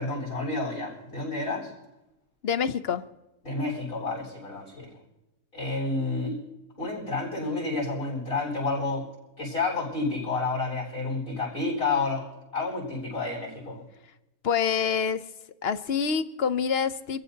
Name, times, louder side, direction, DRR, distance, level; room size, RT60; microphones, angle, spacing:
voice 1, 0.0-1.7 3.4-4.9 5.5-6.4 6.8-9.0 9.4-12.3 12.5-13.8, left 3 dB, 75° left, -6 dB, 7.7 m, -30 dB
voice 2, 2.4-3.0 14.4-15.2 15.6-17.2, left 7 dB, 55° left, 12 dB, 0.8 m, -26 dB
28.0 x 15.5 x 2.9 m, 0.93 s
omnidirectional pair, 1.5 m